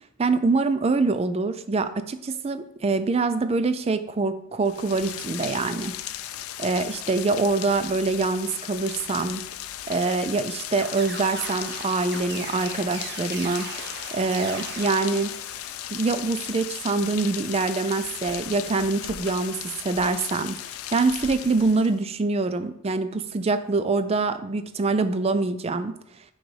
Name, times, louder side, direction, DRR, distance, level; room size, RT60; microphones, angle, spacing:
voice 1, 0.2-5.9 6.6-9.4 9.9-13.7 14.1-15.3 15.9-19.6 19.8-20.6 20.9-25.9, right 3 dB, 30° right, 11 dB, 0.4 m, -24 dB
Rain, 4.6-22.0, left 12 dB, 90° left, 0.4 m, -36 dB
sound 1, 10.8-15.9, right 4 dB, 50° right, 0.9 m, -39 dB
6.1 x 4.0 x 4.8 m, 0.72 s
head